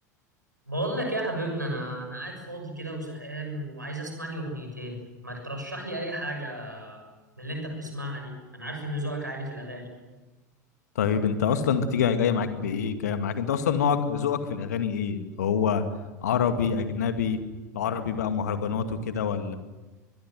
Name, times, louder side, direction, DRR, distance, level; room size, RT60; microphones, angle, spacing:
voice 1, 0.7-5.0 5.2-7.0 7.4-9.9, right 1 dB, 90° right, 2 dB, 6.6 m, -33 dB
voice 2, 11.0-15.8 16.2-17.4 17.7-19.6, left 7 dB, 65° left, 9 dB, 2.2 m, -26 dB
24.5 x 21.0 x 7.8 m, 1.2 s
figure-of-eight pair, 80°, 10 cm